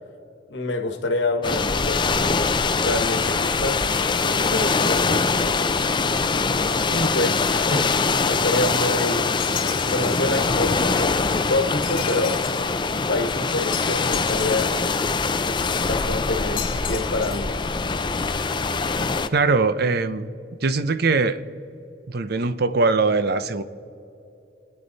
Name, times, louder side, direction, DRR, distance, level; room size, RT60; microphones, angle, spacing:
voice 1, 0.5-2.4 2.7-3.8 4.2-5.3 6.9-9.3 9.9-12.4 12.9-14.8 15.8-17.5, left 2 dB, 75° left, 5 dB, 1.4 m, -27 dB
sound 1, 1.4-19.3, left 4 dB, 25° left, 0.5 m, -23 dB
sound 2, 9.4-10.4 11.8-12.7 13.7-14.9 16.6-17.6, left 10 dB, 50° left, 1.0 m, -35 dB
voice 2, 19.3-20.3 20.6-21.4 22.1-23.6, right 3 dB, 60° right, 12 dB, 0.7 m, -21 dB
27.5 x 9.8 x 4.1 m, 2.8 s
head